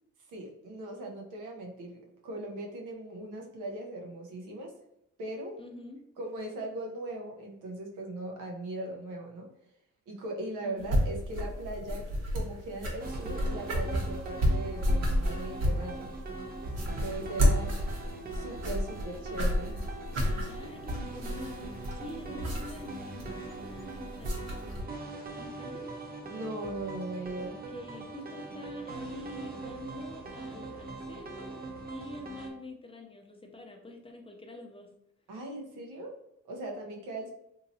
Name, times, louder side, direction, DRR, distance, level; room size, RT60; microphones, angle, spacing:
voice 1, 0.3-4.7 5.2-5.6 6.2-9.5 10.1-16.1 16.8-17.8 18.3-19.8 26.3-27.6 35.3-36.1 36.4-37.3, right 1 dB, 90° right, 1 dB, 0.8 m, -39 dB
voice 2, 5.6-6.0 10.6-11.0 20.5-24.6 25.4-25.9 27.7-31.5 31.9-34.9, left 1 dB, 20° left, 2 dB, 0.5 m, -46 dB
sound 1, 10.8-24.8, equal, 60° right, 1.0 m, -31 dB
sound 2, 13.0-32.5, right 3 dB, 30° right, 0.6 m, -42 dB
2.9 x 2.7 x 2.7 m, 0.78 s
cardioid pair, 90°, 30 cm